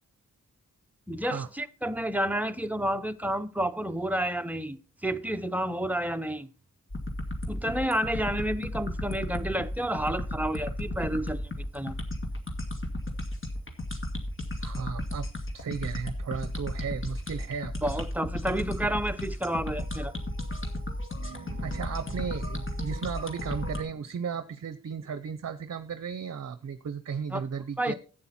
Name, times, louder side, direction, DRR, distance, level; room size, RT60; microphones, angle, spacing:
voice 1, 1.1-6.5 7.5-11.4 11.7-12.0 17.8-20.1 27.3-27.4 27.8-27.9, right 1 dB, 5° right, 0.7 m, -30 dB
sound 1, 6.9-23.8, left 1 dB, 40° left, 2.2 m, -34 dB
voice 2, 14.6-15.3 15.5-18.1 21.2-27.9, right 6 dB, 55° right, 0.7 m, -35 dB
11.5 x 9.0 x 4.3 m
wide cardioid pair, 80°, 33 cm